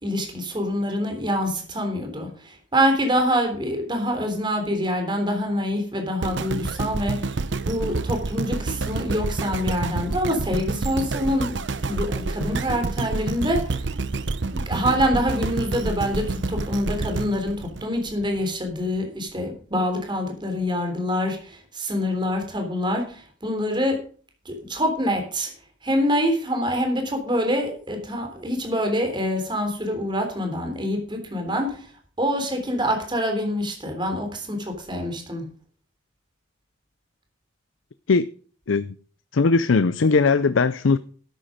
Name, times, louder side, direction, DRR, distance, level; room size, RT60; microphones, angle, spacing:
voice 1, 0.0-11.5 11.8-13.9 14.5-24.0 24.4-25.5 25.8-31.9 32.2-35.5, equal, 25° right, 3.4 m, -25 dB
sound 1, 6.2-18.4 19.0-19.1, right 3 dB, 65° right, 0.8 m, -28 dB
voice 2, 39.3-41.0, left 4 dB, 85° left, 0.6 m, -19 dB
13.0 x 9.2 x 5.1 m
head